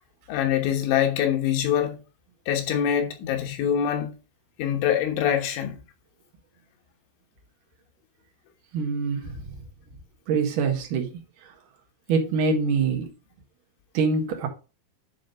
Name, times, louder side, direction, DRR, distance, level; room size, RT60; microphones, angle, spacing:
voice 1, 0.3-2.0 2.5-4.1 4.6-5.8, left 9 dB, 90° left, 3.7 m, -24 dB
voice 2, 8.7-9.5 10.3-11.2 12.1-13.1 13.9-14.5, right 4 dB, 55° right, 2.7 m, -24 dB
10.0 x 3.6 x 5.3 m
omnidirectional pair, 5.3 m